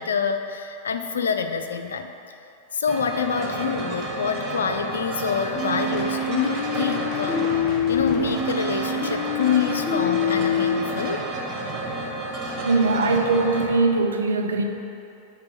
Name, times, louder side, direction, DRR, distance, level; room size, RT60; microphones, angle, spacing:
voice 1, 0.0-2.1 2.7-7.4 7.9-11.2, left 6 dB, 70° left, 7 dB, 0.4 m, -26 dB
sound 1, 2.9-13.7, right 2 dB, 30° right, 0.9 m, -31 dB
sound 2, 5.5-10.7, left 5 dB, 20° left, 1.2 m, -26 dB
voice 2, 12.6-14.6, right 3 dB, 70° right, 4 dB, 0.6 m, -21 dB
7.3 x 3.5 x 6.2 m, 2.6 s
figure-of-eight pair, 90°, 0 cm